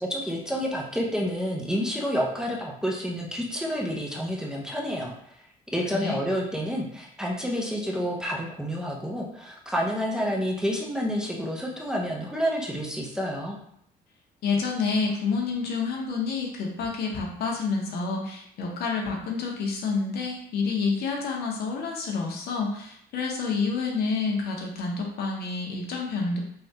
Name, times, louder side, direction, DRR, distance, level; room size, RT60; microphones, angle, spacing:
voice 1, 0.0-5.3 5.7-13.6, equal, 5° right, -3 dB, 0.5 m, -29 dB
voice 2, 14.4-26.4, left 4 dB, 70° left, 0 dB, 0.7 m, -28 dB
3.3 x 2.3 x 2.7 m, 0.70 s
cardioid pair, 110°, 17 cm